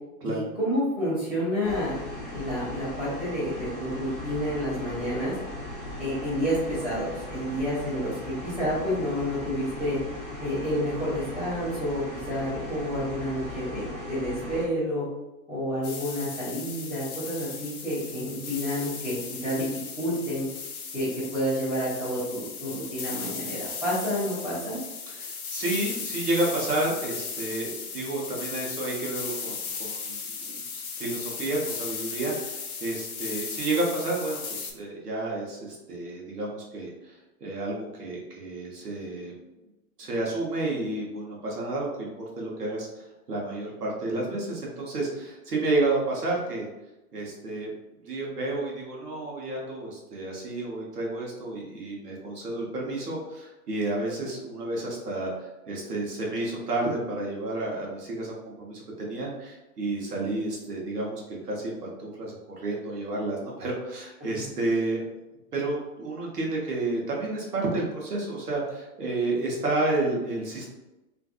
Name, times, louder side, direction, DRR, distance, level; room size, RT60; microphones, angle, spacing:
voice 1, 0.2-2.0 2.3-5.4 6.0-10.0 10.4-15.1 15.5-19.7 20.0-20.5 20.9-24.8 64.3-64.4, equal, 5° right, -18 dB, 0.3 m, -29 dB
sound 1, 1.6-14.6, left 1 dB, 15° left, 0.8 m, -38 dB
sound 2, 15.8-34.7, left 5 dB, 65° left, 0.7 m, -36 dB
voice 2, 25.1-39.3 40.0-42.1 42.4-46.7 47.1-47.7 48.0-65.0 65.5-70.7, right 2 dB, 80° right, -3 dB, 1.0 m, -31 dB
2.5 x 2.5 x 2.3 m, 0.99 s
figure-of-eight pair, 110°, 46 cm